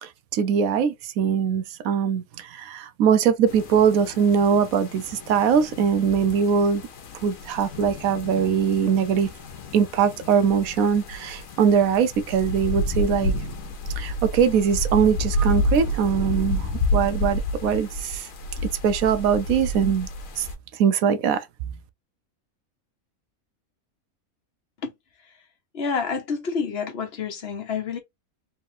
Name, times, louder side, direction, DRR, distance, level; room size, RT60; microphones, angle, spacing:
voice 1, 0.0-6.8 7.2-9.3 9.7-13.3 14.0-18.3 18.6-20.1 20.4-20.5 20.7-21.5, right 7 dB, 80° right, 1.1 m, -22 dB
sound 1, 3.5-20.5, left 1 dB, 70° left, 1.3 m, -30 dB
voice 2, 25.7-28.0, left 5 dB, 50° left, 1.2 m, -28 dB
3.7 x 3.4 x 2.7 m
omnidirectional pair, 1.5 m